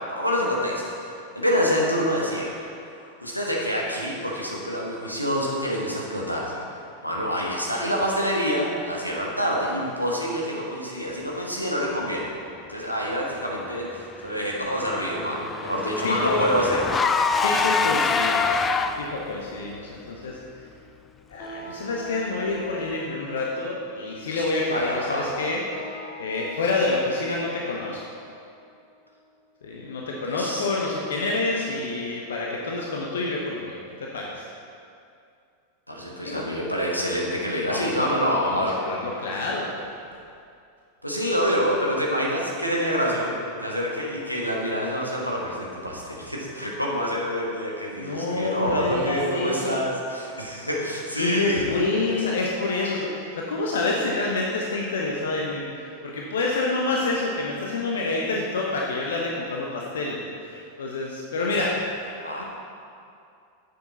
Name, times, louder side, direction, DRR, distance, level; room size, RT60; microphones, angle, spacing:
voice 1, 0.1-1.1 1.3-2.7 3.2-6.6 7.0-12.2 12.7-16.8 24.7-25.3 30.3-30.7 35.9-38.8 41.0-43.3 43.6-51.6 62.2-62.4, equal, 90° left, -3 dB, 1.4 m, -26 dB
Car / Engine, 14.2-19.3, left 5 dB, 20° left, 0.3 m, -25 dB
sound 1, 14.9-29.8, left 1 dB, 40° left, 2.0 m, -44 dB
voice 2, 16.0-16.5 17.3-18.6 18.9-20.7 21.3-25.6 26.2-28.2 29.6-34.5 36.2-36.4 37.7-39.7 48.0-49.7 51.1-61.8 62.2-62.4, left 3 dB, 65° left, -2 dB, 0.9 m, -28 dB
9.4 x 6.9 x 4.0 m, 2.5 s
figure-of-eight pair, 90°, 0 cm